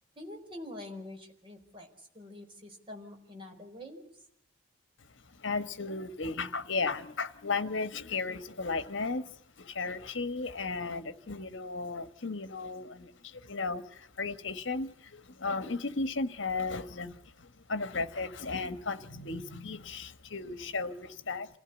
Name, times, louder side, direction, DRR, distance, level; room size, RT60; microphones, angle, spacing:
voice 1, 0.2-4.0, left 1 dB, 25° right, 4.5 m, -46 dB
voice 2, 5.3-21.6, left 3 dB, 60° left, 1.3 m, -35 dB
27.5 x 15.5 x 8.0 m
head